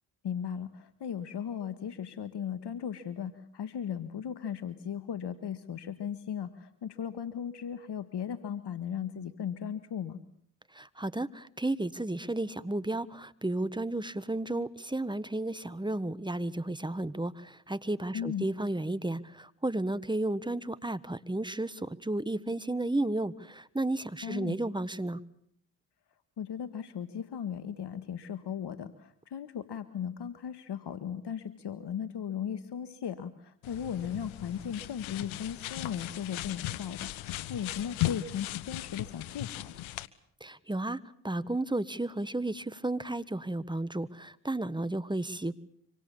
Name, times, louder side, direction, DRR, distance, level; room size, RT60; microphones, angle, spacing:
voice 1, 0.2-10.2 18.1-18.4 24.2-24.6 26.4-39.7, left 8 dB, 55° left, 12 dB, 1.7 m, -37 dB
voice 2, 10.7-25.2 40.4-45.6, right 2 dB, 10° right, 15 dB, 1.4 m, -33 dB
sound 1, 33.6-40.1, left 16 dB, 70° left, 1.2 m, -37 dB
25.5 x 25.5 x 7.1 m, 0.67 s
hypercardioid pair, 55°, 49 cm